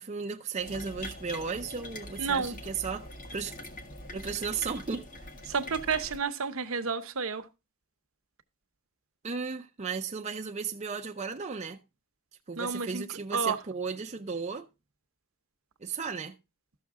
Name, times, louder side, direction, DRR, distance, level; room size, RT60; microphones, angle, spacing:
voice 1, 0.0-3.5 4.1-5.1 9.2-11.8 12.5-14.7 15.8-16.3, right 5 dB, 30° right, 0.6 m, -35 dB
sound 1, 0.6-6.2, left 1 dB, 40° left, 1.5 m, -43 dB
voice 2, 2.2-2.5 5.5-7.4 12.6-13.0 13.3-13.6, right 5 dB, 65° right, 0.9 m, -30 dB
13.0 x 6.5 x 3.6 m
head